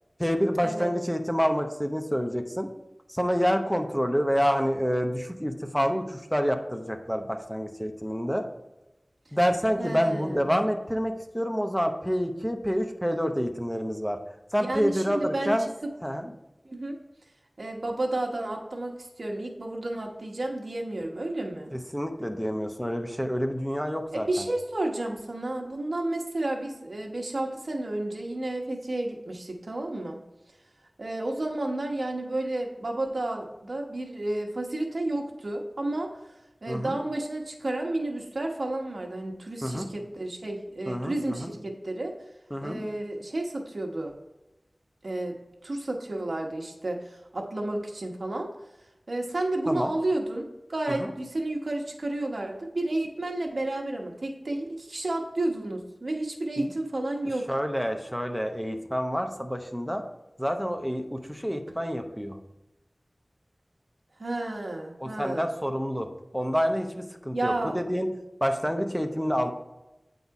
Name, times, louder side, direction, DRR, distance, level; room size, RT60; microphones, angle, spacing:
voice 1, 0.2-2.7 3.1-8.5 9.3-14.2 14.5-15.7 16.0-16.3 21.7-24.3 36.7-37.0 39.6-39.9 40.9-41.5 42.5-42.8 49.7-49.9 51.0-51.1 56.6-56.7 57.5-60.0 60.4-62.4 65.0-66.1 66.3-68.1 68.4-69.5, equal, 5° left, 5 dB, 0.7 m, -28 dB
voice 2, 9.8-10.5 14.6-15.5 16.6-17.0 17.6-21.7 24.1-30.2 31.0-36.1 36.6-42.1 42.6-44.1 45.0-45.4 45.6-48.5 49.1-57.5 64.2-65.5 67.3-67.8, right 2 dB, 75° right, 2 dB, 1.1 m, -31 dB
8.4 x 4.1 x 4.7 m, 0.97 s
wide cardioid pair, 60°, 0 cm